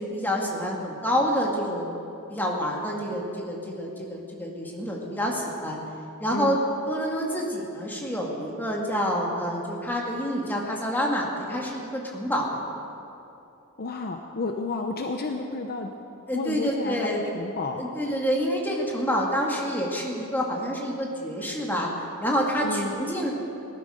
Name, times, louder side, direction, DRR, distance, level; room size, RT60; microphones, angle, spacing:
voice 1, 0.0-1.9 2.3-5.8 6.2-6.6 6.9-12.5 16.3-17.2 17.8-21.9 22.2-23.3, equal, 10° left, -2 dB, 2.0 m, -27 dB
voice 2, 13.8-15.9 16.3-17.8 22.6-22.9, left 3 dB, 45° left, 4 dB, 0.7 m, -31 dB
18.5 x 12.5 x 5.0 m, 2.8 s
head